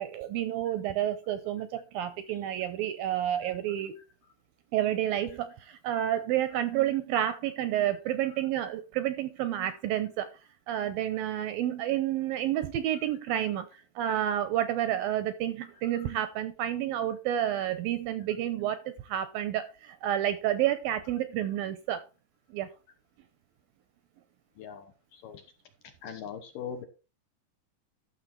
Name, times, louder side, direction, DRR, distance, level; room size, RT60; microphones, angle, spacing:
voice 1, 0.0-4.0 4.7-10.3 10.7-13.7 14.0-22.0 22.5-22.7, right 11 dB, 75° right, 12 dB, 2.2 m, -30 dB
voice 2, 24.6-25.4 26.0-26.8, left 7 dB, 70° left, 7 dB, 2.3 m, -41 dB
12.5 x 6.6 x 4.4 m, 0.32 s
omnidirectional pair, 4.8 m